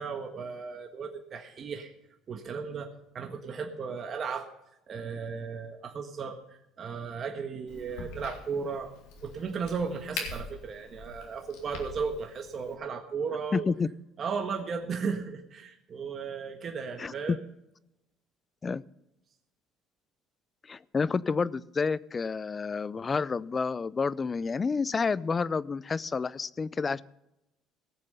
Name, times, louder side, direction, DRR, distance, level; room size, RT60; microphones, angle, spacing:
voice 1, 0.0-1.9 2.3-4.5 4.9-8.9 9.2-13.7 14.2-17.4, right 5 dB, 40° right, 4 dB, 1.5 m, -35 dB
Crack, 7.7-12.7, left 4 dB, 85° left, 3.1 m, -43 dB
voice 2, 13.5-13.9 17.0-17.4 18.6-18.8 20.6-27.0, left 5 dB, 30° left, 20 dB, 0.5 m, -29 dB
18.5 x 7.3 x 5.6 m, 0.87 s
cardioid pair, 100°, 0 cm